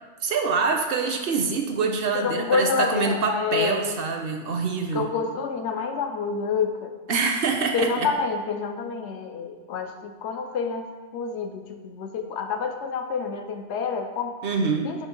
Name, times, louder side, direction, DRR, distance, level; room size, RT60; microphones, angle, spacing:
voice 1, 0.2-5.1 7.1-8.1 14.4-15.0, right 4 dB, 60° right, 4 dB, 0.7 m, -25 dB
voice 2, 2.1-3.8 4.9-6.9 7.7-14.4 14.8-15.1, left 5 dB, 75° left, 5 dB, 0.9 m, -28 dB
7.0 x 2.6 x 5.2 m, 1.3 s
omnidirectional pair, 1.2 m